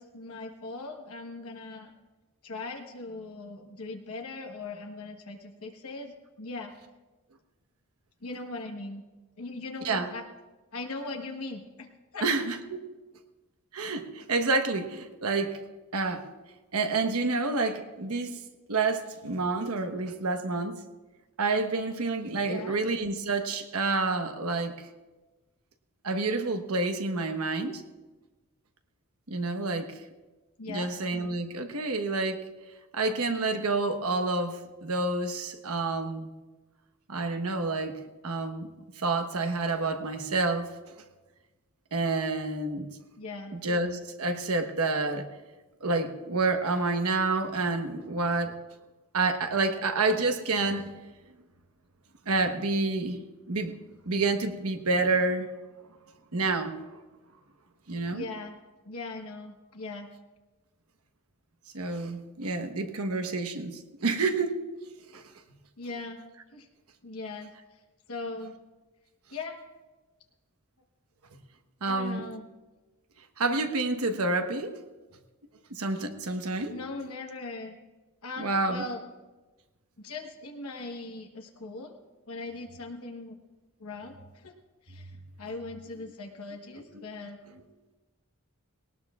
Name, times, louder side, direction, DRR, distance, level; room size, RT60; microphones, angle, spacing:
voice 1, 0.0-1.9 2.4-6.7 8.2-9.0 9.4-10.2 10.7-11.9 12.1-12.3 22.5-22.8 30.6-30.9 43.2-43.6 58.1-58.6 58.8-60.1 65.8-66.2 66.5-66.7 67.0-67.5 68.1-68.6 69.3-69.6 71.9-72.5 76.7-77.8 78.2-79.0 80.0-81.9 82.3-83.4 83.8-84.5 84.8-85.1 85.4-87.4, left 3 dB, 80° left, 3 dB, 1.2 m, -39 dB
voice 2, 12.2-12.8 13.7-15.6 15.9-16.3 16.7-18.4 18.7-20.8 21.4-24.9 26.0-27.8 29.3-30.0 30.7-32.4 32.9-36.3 37.1-37.9 38.2-38.7 39.0-40.7 41.9-42.9 43.5-45.3 45.8-48.5 49.1-50.9 52.3-53.2 53.5-53.7 54.0-55.5 56.3-56.8 57.9-58.3 61.7-64.6 65.1-65.2 71.8-72.3 73.4-74.8 75.7-76.7 78.4-78.8 86.9-87.1, right 3 dB, 90° right, 6 dB, 1.2 m, -28 dB
19.5 x 18.5 x 2.4 m, 1.2 s
head